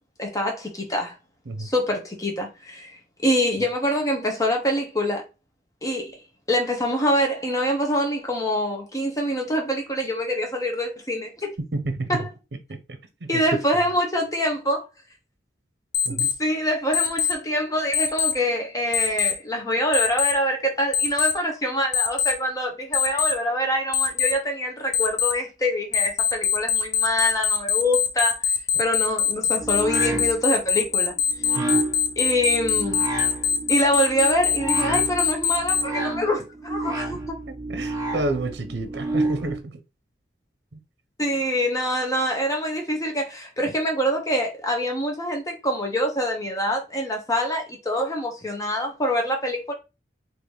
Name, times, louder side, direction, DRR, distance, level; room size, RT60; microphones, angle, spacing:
voice 1, 0.2-1.1 1.6-5.3 5.8-6.1 6.5-11.5 12.1-12.3 13.3-14.9 16.1-28.5 28.8-31.1 32.2-33.1 33.7-37.2 41.2-49.7, equal, 20° left, 1.1 m, -25 dB
voice 2, 11.7-12.2 12.7-12.8 13.3-13.4 13.8-14.0 16.0-16.3 31.6-31.8 36.9-37.0 37.5-39.7, right 2 dB, 65° right, 0.7 m, -30 dB
Alarm, 15.9-16.3 16.9-17.3 17.9-18.3 18.9-19.3 19.9-20.3 20.9-21.3 21.9-22.3 22.9-23.3 23.9-24.3 24.9-25.3 25.9-35.8, left 7 dB, 70° left, 0.7 m, -22 dB
sound 1, 29.6-39.6, right 2 dB, 20° right, 1.3 m, -30 dB
4.0 x 2.9 x 3.3 m
head